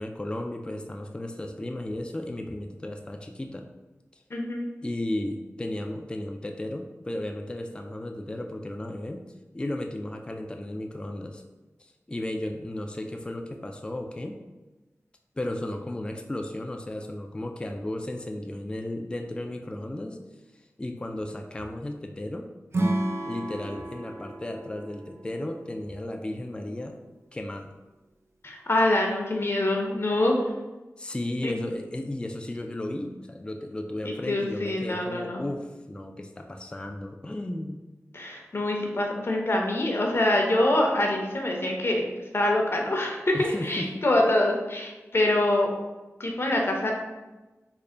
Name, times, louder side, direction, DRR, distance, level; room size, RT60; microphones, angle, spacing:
voice 1, 0.0-3.7 4.8-9.2 9.5-11.4 11.8-14.4 15.4-20.2 20.8-22.5 23.3-27.0 27.3-27.7 31.0-37.8 43.3-44.1, left 1 dB, 20° left, 3 dB, 0.3 m, -34 dB
voice 2, 4.3-4.7 28.4-30.5 31.4-31.6 34.3-35.4 38.1-45.7 46.2-46.9, left 1 dB, 50° left, 1 dB, 0.6 m, -25 dB
Acoustic guitar / Strum, 22.7-26.0, right 1 dB, 50° right, 0.5 m, -31 dB
3.3 x 2.1 x 3.7 m, 1.1 s
wide cardioid pair, 55°, 5 cm